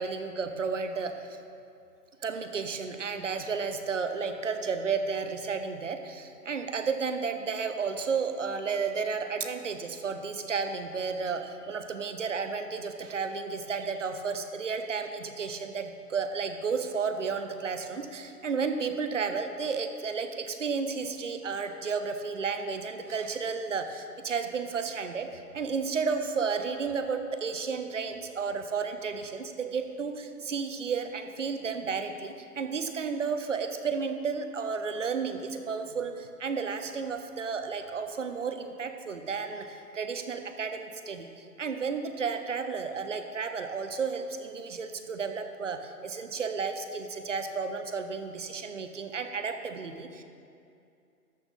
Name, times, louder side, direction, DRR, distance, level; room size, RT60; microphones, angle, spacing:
voice 1, 0.0-1.4 2.2-50.2, right 5 dB, 50° right, 7 dB, 0.8 m, -32 dB
13.5 x 6.1 x 4.0 m, 2.5 s
hypercardioid pair, 160°, 47 cm